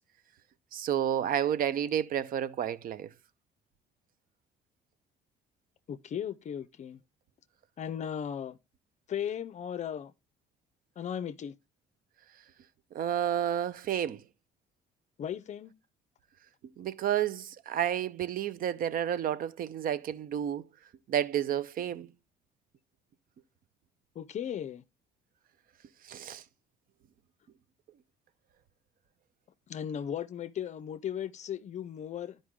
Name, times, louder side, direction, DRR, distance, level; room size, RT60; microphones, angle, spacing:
voice 1, 0.7-3.1 12.9-14.2 16.8-20.6 21.1-22.1 26.1-26.4, right 10 dB, 55° right, 0.7 m, -30 dB
voice 2, 5.9-7.0 7.8-8.6 9.1-10.1 11.0-11.5 15.2-15.7 24.2-24.8 29.7-32.4, left 9 dB, 45° left, 0.5 m, -36 dB
11.5 x 5.3 x 3.6 m
cardioid pair, 110°, 17 cm